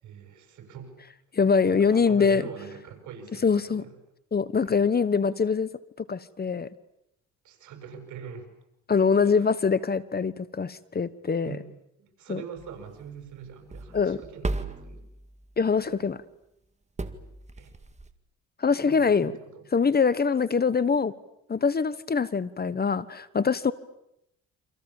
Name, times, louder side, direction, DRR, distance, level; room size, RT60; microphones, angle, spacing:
voice 1, 0.0-1.0 1.6-4.0 4.6-4.8 7.4-8.5 9.1-9.5 11.4-11.7 12.0-15.1 17.6-17.7 18.7-19.7, right 7 dB, 75° right, 5 dB, 6.8 m, -43 dB
voice 2, 1.3-2.4 3.4-3.8 4.3-5.7 6.0-6.7 8.9-11.5 12.3-12.4 13.9-14.2 15.6-16.2 18.6-19.3 19.7-21.1 21.5-23.7, left 5 dB, 30° left, 16 dB, 1.3 m, -23 dB
sound 1, 12.6-15.8 17.0-18.1, right 2 dB, 20° right, 2.1 m, -37 dB
29.0 x 26.0 x 7.3 m, 0.82 s
cardioid pair, 90°, 30 cm